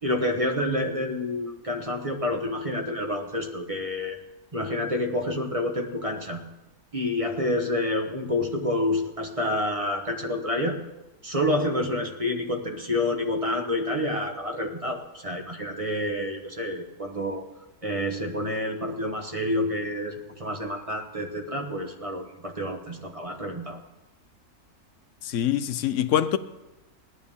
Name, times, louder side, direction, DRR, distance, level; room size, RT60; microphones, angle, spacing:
voice 1, 0.0-4.2 4.5-6.4 6.9-10.8 11.2-17.4 17.8-23.8, left 1 dB, 25° right, 1.1 m, -28 dB
voice 2, 25.2-26.4, left 10 dB, 65° left, 0.9 m, -24 dB
18.0 x 12.0 x 3.6 m
omnidirectional pair, 1.6 m